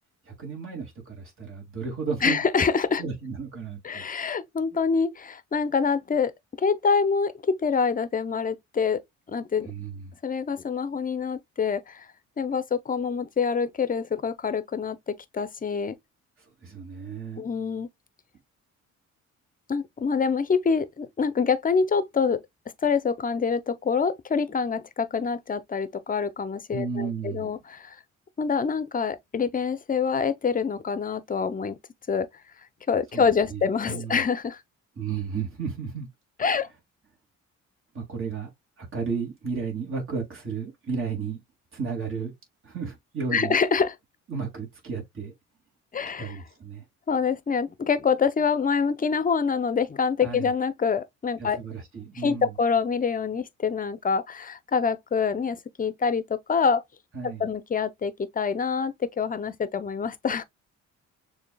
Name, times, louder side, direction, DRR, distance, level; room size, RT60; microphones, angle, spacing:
voice 1, 0.3-2.4 3.0-4.0 9.7-10.1 16.6-17.4 26.7-27.5 33.1-34.2 35.0-36.1 37.9-38.5 38.8-41.4 41.7-42.3 42.6-43.6 44.3-45.3 46.2-46.8 50.2-50.5 51.4-52.5 57.1-57.4, right 5 dB, 45° right, 2.4 m, -33 dB
voice 2, 2.2-3.0 3.8-6.3 6.6-9.0 9.3-9.7 10.2-12.1 12.4-16.0 17.4-17.9 19.7-22.4 22.8-28.0 28.4-31.8 32.1-32.3 32.9-34.6 36.4-36.7 43.3-43.9 45.9-46.4 47.1-51.6 52.1-56.8 57.4-60.4, left 5 dB, 30° left, 0.6 m, -26 dB
6.6 x 2.8 x 2.2 m
cardioid pair, 90°, 30 cm